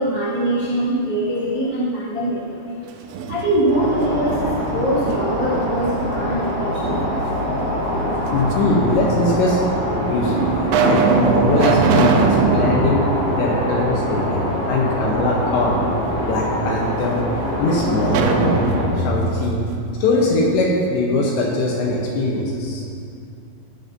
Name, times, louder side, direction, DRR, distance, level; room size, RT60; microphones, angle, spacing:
voice 1, 0.0-2.6 3.3-7.1, right 1 dB, 60° right, -11 dB, 0.6 m, -22 dB
sound 1, 2.9-3.9 4.3-5.6 6.8-7.6 8.5-8.6 9.5-9.6 10.2-14.3 14.6-14.7 18.0-20.8, right 5 dB, 85° right, 3.2 m, -22 dB
sound 2, 3.7-18.9, equal, 35° right, 1.8 m, -24 dB
voice 2, 8.3-9.6 10.0-10.5 10.8-13.0 13.4-15.8 16.3-17.2 17.6-18.5 19.0-19.6 19.9-22.8, left 2 dB, 75° left, -2 dB, 2.8 m, -21 dB
16.5 x 8.2 x 2.7 m, 2.4 s
omnidirectional pair, 5.8 m